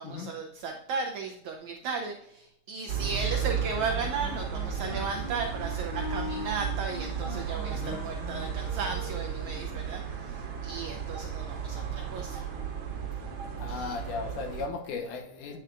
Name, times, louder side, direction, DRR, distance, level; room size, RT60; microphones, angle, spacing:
voice 1, 0.0-12.4 13.7-13.9, right 5 dB, 75° right, 2 dB, 1.8 m, -35 dB
sound 1, 2.9-14.7, right 7 dB, 50° right, 2.2 m, -34 dB
Wind instrument woodwind instrument, 3.2-9.6, left 5 dB, 55° left, 3.8 m, -42 dB
voice 2, 13.6-15.6, left 4 dB, 75° left, 4 dB, 2.5 m, -36 dB
9.6 x 6.7 x 2.5 m, 0.77 s
omnidirectional pair, 3.9 m